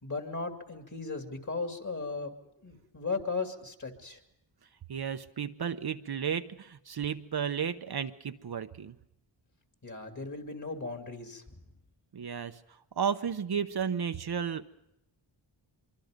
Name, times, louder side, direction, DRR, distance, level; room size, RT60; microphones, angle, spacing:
voice 1, 0.0-4.2 9.8-11.6, left 4 dB, 40° left, 4 dB, 2.8 m, -37 dB
voice 2, 4.9-8.9 12.1-12.6 13.0-14.7, right 7 dB, 55° right, 9 dB, 0.8 m, -33 dB
24.5 x 24.0 x 5.2 m, 0.83 s
wide cardioid pair, 70°, 47 cm